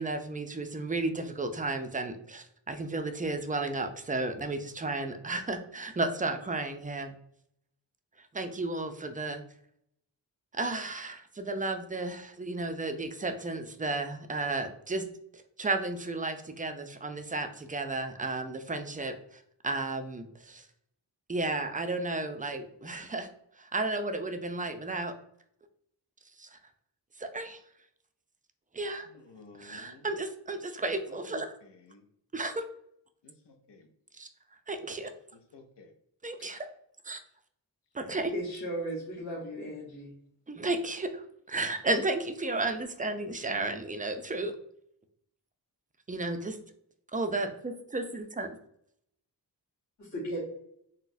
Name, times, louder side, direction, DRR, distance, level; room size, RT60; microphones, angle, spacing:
voice 1, 0.0-7.1 8.3-9.4 10.5-15.0 15.3-19.1 19.6-20.7 21.3-23.3 23.6-25.1 26.4-26.6 27.2-27.6 28.7-29.1 29.6-31.5 32.3-32.6 34.2-34.3 34.7-35.1 36.2-36.6 37.0-37.2 37.9-38.3 40.5-44.5 46.1-46.6 47.1-48.6, right 2 dB, 20° right, 7 dB, 0.4 m, -33 dB
voice 2, 29.0-30.1 31.1-32.0 33.2-33.9 35.3-35.9, left 3 dB, 75° left, 6 dB, 0.7 m, -53 dB
voice 3, 38.3-40.1 50.0-50.4, right 1 dB, 40° left, -6 dB, 1.0 m, -36 dB
3.9 x 2.1 x 2.6 m, 0.72 s
cardioid pair, 45°, 42 cm